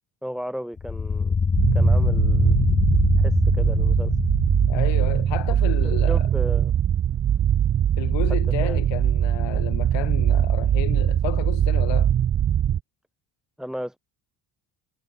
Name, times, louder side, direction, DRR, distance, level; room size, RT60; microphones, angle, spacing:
voice 1, 0.2-1.3 1.7-2.6 3.2-4.1 5.8-6.7 8.6-8.8 13.6-14.0, equal, ahead, 3.8 m, -34 dB
sound 1, 0.8-6.0, left 5 dB, 15° left, 0.7 m, -24 dB
sound 2, 1.6-12.8, right 10 dB, 30° right, 0.4 m, -21 dB
voice 2, 4.7-6.3 8.0-12.1, left 19 dB, 85° left, 3.1 m, -32 dB
cardioid pair, 125°, 43 cm